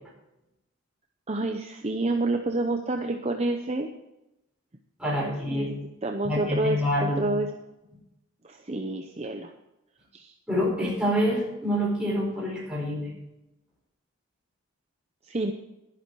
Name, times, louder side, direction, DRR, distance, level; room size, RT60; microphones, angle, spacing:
voice 1, 1.3-3.9 5.2-7.5 8.4-9.5 10.1-10.3 15.2-15.5, right 2 dB, 30° right, 4 dB, 0.7 m, -29 dB
voice 2, 5.0-5.7 6.2-7.3 10.5-13.1, equal, 5° right, -4 dB, 4.6 m, -27 dB
11.5 x 11.5 x 4.7 m, 0.91 s
head